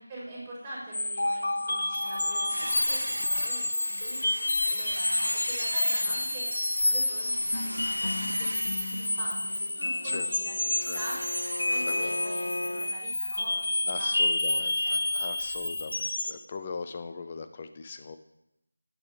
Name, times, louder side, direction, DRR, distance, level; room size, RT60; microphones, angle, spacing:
voice 1, 0.0-11.2 11.6-14.2 14.5-15.0, right 1 dB, 10° right, -6 dB, 4.6 m, -44 dB
sound 1, 0.9-16.4, left 2 dB, 50° left, 0.9 m, -29 dB
sound 2, 2.5-12.6 13.9-14.1 14.5-14.6, right 1 dB, 70° right, 0.6 m, -39 dB
Bowed string instrument, 9.7-12.9, left 2 dB, 70° left, 2.2 m, -38 dB
voice 2, 11.9-12.2 13.9-18.2, left 4 dB, 25° left, 8 dB, 0.8 m, -40 dB
8.8 x 8.6 x 8.3 m, 0.83 s
figure-of-eight pair, 165°, 0 cm